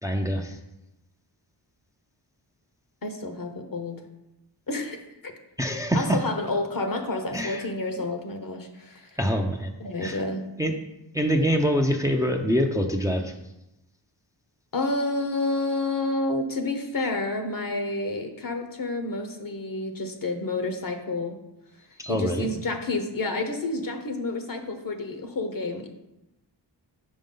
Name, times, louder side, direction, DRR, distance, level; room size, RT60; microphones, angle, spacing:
voice 1, 0.0-0.6 5.6-6.2 7.3-7.7 8.0-8.1 9.2-9.7 10.0-10.2 10.6-10.8 11.1-13.3 22.0-22.5, equal, 5° right, 3 dB, 0.6 m, -25 dB
voice 2, 3.0-4.0 4.7-5.3 5.9-9.2 9.8-10.4 14.7-21.4 22.1-25.9, left 2 dB, 45° left, 6 dB, 0.9 m, -29 dB
5.3 x 4.7 x 3.8 m, 0.92 s
cardioid pair, 45°, 46 cm